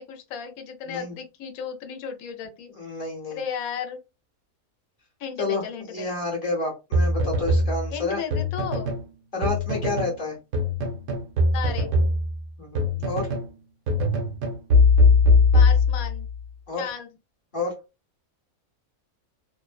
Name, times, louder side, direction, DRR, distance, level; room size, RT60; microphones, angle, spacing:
voice 1, 0.0-2.7 3.3-4.0 5.2-6.1 7.9-8.9 11.5-11.9 15.5-16.3 16.8-17.1, left 7 dB, 75° left, 5 dB, 1.0 m, -34 dB
voice 2, 0.8-1.1 2.7-3.4 5.4-5.6 5.9-8.2 9.3-10.4 12.6-13.3 16.7-16.8 17.5-17.7, left 3 dB, 45° left, -2 dB, 0.9 m, -29 dB
sound 1, 6.9-9.1 9.4-10.2 10.5-13.5 13.9-16.3, left 3 dB, 80° right, 1.2 m, -21 dB
2.8 x 2.1 x 2.3 m, 0.27 s
omnidirectional pair, 1.5 m